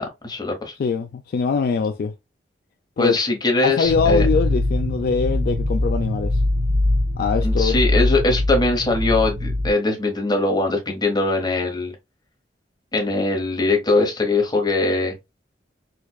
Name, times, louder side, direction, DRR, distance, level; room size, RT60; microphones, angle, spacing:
voice 1, 0.0-0.7 3.0-4.3 7.4-11.9 12.9-15.1, left 2 dB, 25° left, 1.1 m, -21 dB
voice 2, 0.8-2.1 3.0-3.2 3.6-6.4 7.2-7.8, left 5 dB, 55° left, 0.3 m, -22 dB
sound 1, 3.8-9.7, left 1 dB, 85° right, 1.3 m, -22 dB
4.5 x 2.3 x 2.3 m
head